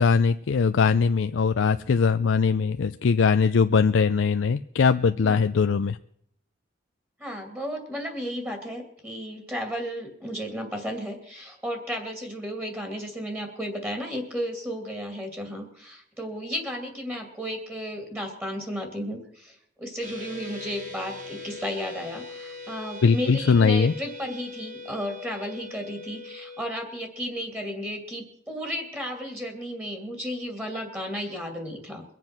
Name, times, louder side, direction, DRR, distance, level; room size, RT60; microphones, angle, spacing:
voice 1, 0.0-6.0 23.0-23.9, left 5 dB, 80° left, 10 dB, 0.4 m, -21 dB
voice 2, 7.2-32.0, equal, 10° right, 4 dB, 2.5 m, -34 dB
sound 1, 20.0-26.7, left 3 dB, 45° right, 4.4 m, -41 dB
23.0 x 7.7 x 6.0 m, 0.70 s
head